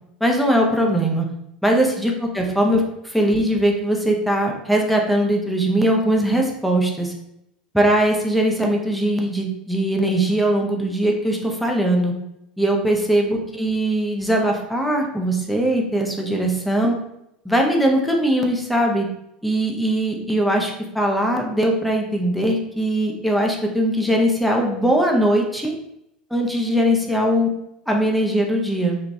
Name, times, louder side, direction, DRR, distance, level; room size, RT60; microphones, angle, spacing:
voice 1, 0.2-1.3 1.6-7.1 7.7-12.1 12.6-17.0 17.4-19.1 19.4-25.7 26.3-27.5 27.9-29.0, right 1 dB, ahead, 0 dB, 0.5 m, -20 dB
2.8 x 2.3 x 2.6 m, 0.82 s
figure-of-eight pair, 80°, 4 cm